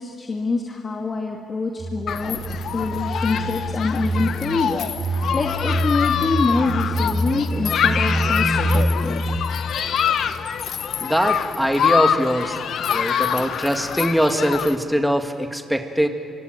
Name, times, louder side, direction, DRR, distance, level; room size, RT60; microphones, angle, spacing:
voice 1, 0.0-2.4 2.7-9.2, left 3 dB, 35° left, 2 dB, 2.2 m, -26 dB
sound 1, 1.8-9.4, right 1 dB, 35° right, 3.3 m, -25 dB
Human group actions, 2.1-14.8, left 8 dB, 65° left, 1.2 m, -25 dB
voice 2, 11.0-12.6 12.9-16.1, equal, ahead, 5 dB, 1.9 m, -22 dB
25.0 x 24.5 x 9.0 m, 2.2 s
cardioid pair, 90°, 0 cm